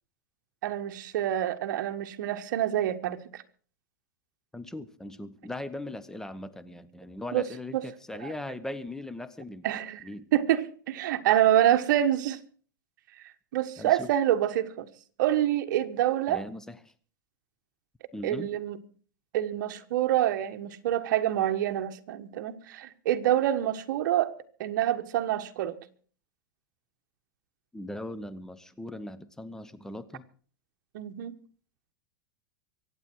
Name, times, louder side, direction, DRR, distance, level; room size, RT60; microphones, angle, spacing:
voice 1, 0.6-3.2 7.3-7.4 7.7-7.8 8.2-8.3 9.6-10.0 10.3-12.4 13.5-14.9 15.2-16.4 18.2-18.8 19.3-24.3 24.6-25.8 30.9-31.4, right 12 dB, 70° right, 1.5 m, -26 dB
voice 2, 4.5-9.7 10.0-10.3 13.8-14.1 16.3-16.9 18.1-18.5 27.7-30.3, left 1 dB, 5° left, 0.9 m, -39 dB
24.5 x 8.8 x 4.7 m
supercardioid pair, 145°, 11 cm